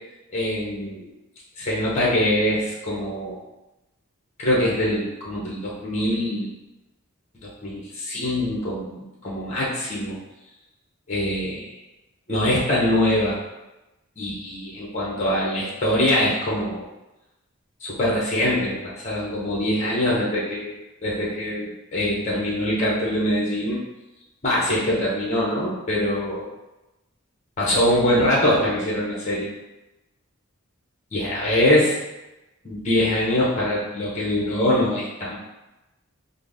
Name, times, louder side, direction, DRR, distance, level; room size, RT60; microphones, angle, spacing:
voice 1, 0.3-1.1 1.6-3.4 4.4-6.5 7.4-10.2 11.1-11.7 12.3-13.4 14.2-16.8 17.8-20.7 21.0-23.8 24.4-26.4 27.6-29.5 31.1-31.9 32.6-35.4, left 1 dB, 30° left, -5 dB, 0.8 m, -23 dB
3.8 x 2.0 x 3.5 m, 1.0 s
head